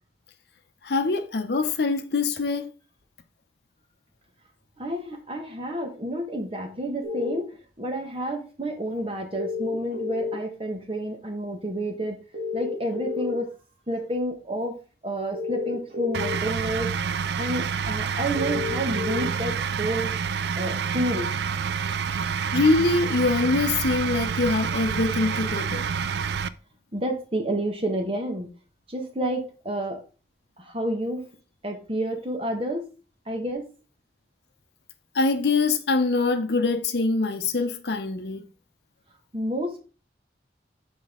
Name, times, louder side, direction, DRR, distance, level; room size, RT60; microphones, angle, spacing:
voice 1, 0.8-2.7 22.5-25.9 35.1-38.4, left 3 dB, 65° left, 0.7 m, -24 dB
voice 2, 4.8-7.5 7.8-12.2 12.5-13.5 13.9-14.7 15.0-16.9 17.4-20.1 20.5-21.3 26.9-28.5 28.9-30.0 30.6-31.2 31.6-32.9 33.3-33.6 39.3-39.8, right 1 dB, 30° right, 1.3 m, -29 dB
sound 1, 7.0-7.4 9.3-10.3 12.3-13.3 15.3-16.3 18.3-19.3, left 5 dB, 50° right, 1.7 m, -30 dB
sound 2, 16.1-26.5, right 6 dB, 70° right, 0.4 m, -28 dB
6.1 x 5.2 x 3.7 m
head